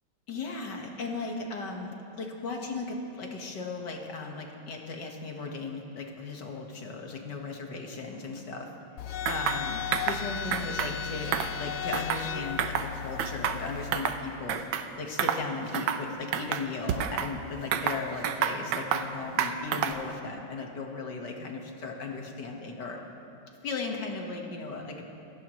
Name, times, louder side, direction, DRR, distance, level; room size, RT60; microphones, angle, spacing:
voice 1, 0.3-8.7 9.3-14.6 15.0-23.0 23.6-25.0, left 3 dB, 55° left, 1 dB, 2.0 m, -37 dB
sound 1, 9.0-14.0, left 8 dB, 75° left, 1.0 m, -35 dB
sound 2, 9.3-9.6 9.9-10.2 10.5-10.9 11.3-12.3 12.6-12.9 13.2-14.2 14.5-14.9 15.2-15.4 15.7-16.0 16.3-17.3 17.7-19.1 19.4-20.1, right 8 dB, 75° right, 1.5 m, -29 dB
27.0 x 16.5 x 3.1 m, 2.9 s
omnidirectional pair, 2.3 m